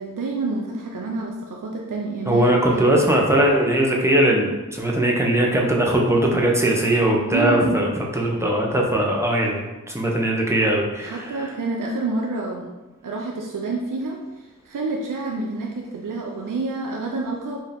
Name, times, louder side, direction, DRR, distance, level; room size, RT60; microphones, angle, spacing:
voice 1, 0.0-2.9 7.3-7.9 11.0-12.7 13.0-14.2 14.6-17.6, right 3 dB, 65° right, 0 dB, 0.6 m, -28 dB
voice 2, 2.3-11.5, right 1 dB, 10° right, -2 dB, 1.0 m, -20 dB
4.7 x 2.8 x 3.5 m, 1.1 s
cardioid pair, 40°, 34 cm